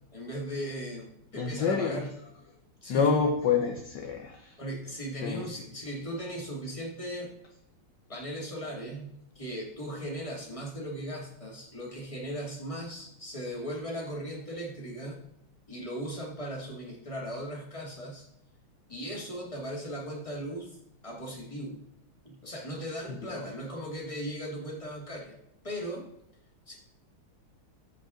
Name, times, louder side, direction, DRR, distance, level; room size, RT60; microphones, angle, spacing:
voice 1, 0.1-1.1 1.3-2.1 2.8-3.1 4.6-7.3 8.1-15.2 15.7-18.3 18.9-20.8 21.0-21.8 22.2-25.4 25.6-26.1 26.7-26.8, equal, 15° left, -2 dB, 2.3 m, -38 dB
voice 2, 1.3-2.0 2.9-4.6 5.2-5.6 23.1-23.5, left 5 dB, 65° left, 4 dB, 1.3 m, -28 dB
14.5 x 5.2 x 3.8 m, 0.76 s
omnidirectional pair, 2.3 m